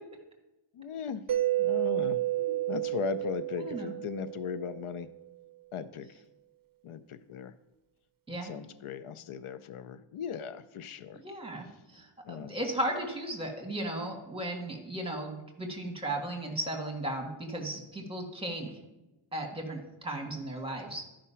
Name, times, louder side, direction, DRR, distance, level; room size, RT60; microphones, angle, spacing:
voice 1, 0.7-1.3 1.6-2.2 2.7-5.1 5.7-6.2 6.8-7.5 8.4-11.2 12.2-12.5, left 7 dB, 80° left, 13 dB, 0.6 m, -38 dB
Mallet percussion, 1.3-5.1, right 14 dB, 45° right, 0.5 m, -31 dB
voice 2, 3.6-3.9 8.3-8.5 11.1-11.6 11.9-18.7 19.3-21.0, right 1 dB, 10° right, 2 dB, 1.5 m, -36 dB
12.0 x 5.2 x 5.6 m, 0.98 s
wide cardioid pair, 150°, 49 cm